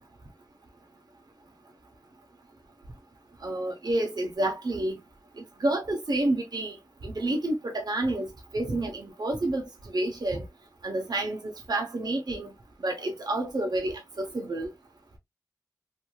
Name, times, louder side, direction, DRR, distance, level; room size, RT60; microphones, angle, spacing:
voice 1, 3.4-5.0 5.4-10.4 10.8-12.5 12.8-14.7, right 1 dB, 70° right, 0.8 m, -29 dB
3.1 x 2.6 x 2.3 m
wide cardioid pair, 55°, 7 cm